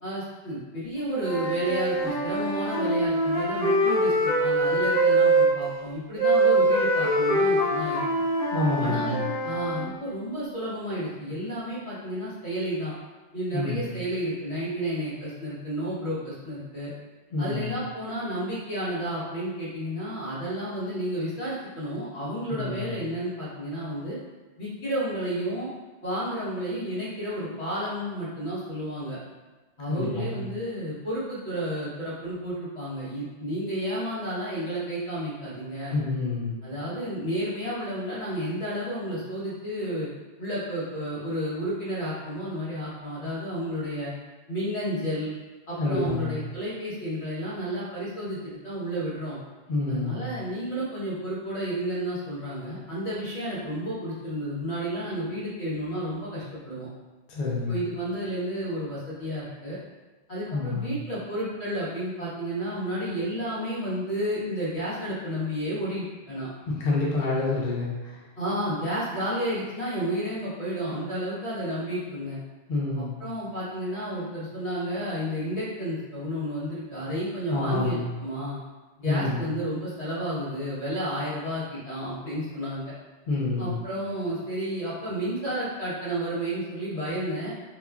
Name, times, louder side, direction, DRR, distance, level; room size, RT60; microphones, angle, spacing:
voice 1, 0.0-8.0 8.8-9.2 9.4-12.9 13.3-16.9 17.4-24.2 24.6-25.7 26.0-29.2 29.8-35.9 36.6-40.1 40.4-44.1 44.5-45.3 45.7-48.4 48.6-49.4 49.9-56.9 57.7-59.8 60.3-66.5 68.4-72.4 72.9-78.6 79.0-82.9 83.6-87.5, equal, 75° left, -10 dB, 1.4 m, -31 dB
Wind instrument woodwind instrument, 1.0-5.5 6.2-9.8, right 1 dB, 5° left, 0.8 m, -23 dB
voice 2, 8.5-9.3 13.5-13.9 17.3-17.7 22.5-22.9 29.9-30.4 35.9-36.6 45.8-46.4 49.7-50.3 57.3-57.8 60.5-61.0 66.7-68.2 72.7-73.1 77.5-78.1 79.0-79.4 83.3-83.8, left 3 dB, 60° left, -4 dB, 0.6 m, -28 dB
2.9 x 2.2 x 2.3 m, 1.2 s
omnidirectional pair, 1.1 m